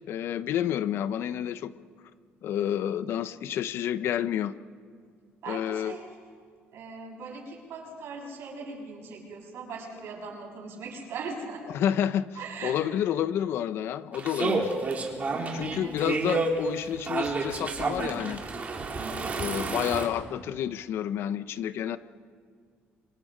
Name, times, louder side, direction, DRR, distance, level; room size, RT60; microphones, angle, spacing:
voice 1, 0.1-1.7 2.4-4.5 5.5-5.9 11.7-12.3 12.6-14.7 15.5-18.4 19.4-22.0, left 10 dB, 70° left, 14 dB, 0.8 m, -29 dB
voice 2, 5.4-6.1 6.7-11.7 12.4-12.8 15.8-16.1 19.0-19.5, right 4 dB, 70° right, -1 dB, 7.6 m, -40 dB
sound 1, 14.1-20.1, right 4 dB, 35° right, 3.8 m, -30 dB
28.5 x 25.5 x 5.1 m, 2.1 s
cardioid pair, 105°, 4 cm